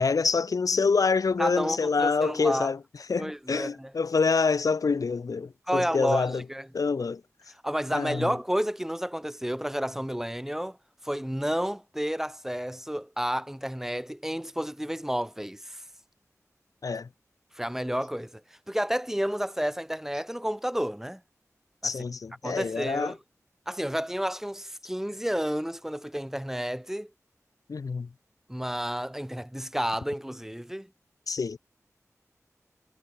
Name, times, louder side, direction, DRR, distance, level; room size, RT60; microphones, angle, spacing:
voice 1, 0.0-2.8 3.1-6.4 6.7-7.2 7.9-8.3 16.8-17.1 21.8-23.1 27.7-28.1 31.3-31.6, left 4 dB, 85° left, 1.9 m, -26 dB
voice 2, 1.4-2.7 3.2-3.9 5.7-6.7 7.6-10.8 11.0-15.8 17.5-18.4 18.7-21.2 21.8-21.9 22.4-23.2 23.7-27.1 28.5-30.9, equal, 5° right, 3.9 m, -31 dB
wide cardioid pair, 50°, 6 cm